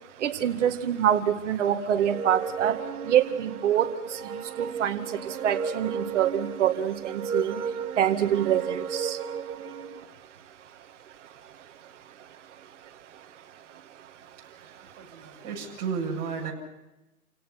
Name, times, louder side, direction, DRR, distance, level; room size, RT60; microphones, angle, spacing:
voice 1, 0.2-2.8 3.1-3.9 4.6-5.0 5.4-7.6 8.0-9.2, right 10 dB, 50° right, 8 dB, 2.2 m, -25 dB
sound 1, 1.9-10.0, right 6 dB, 75° right, 1.6 m, -34 dB
voice 2, 14.5-16.5, right 5 dB, 35° right, -1 dB, 7.7 m, -34 dB
29.5 x 18.0 x 5.9 m, 0.98 s
hypercardioid pair, 145°, 45 cm